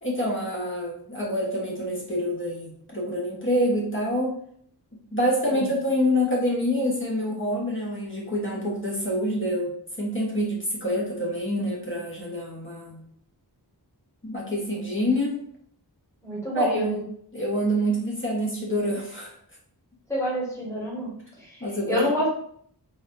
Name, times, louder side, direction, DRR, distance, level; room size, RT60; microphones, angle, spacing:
voice 1, 0.0-4.3 5.1-13.0 14.2-15.4 16.5-17.0 17.3-19.3 21.6-22.0, equal, 30° left, -4 dB, 1.2 m, -26 dB
voice 2, 16.2-17.0 20.1-22.3, equal, 5° left, -6 dB, 1.5 m, -28 dB
4.1 x 2.6 x 2.6 m, 0.64 s
wide cardioid pair, 55°, 41 cm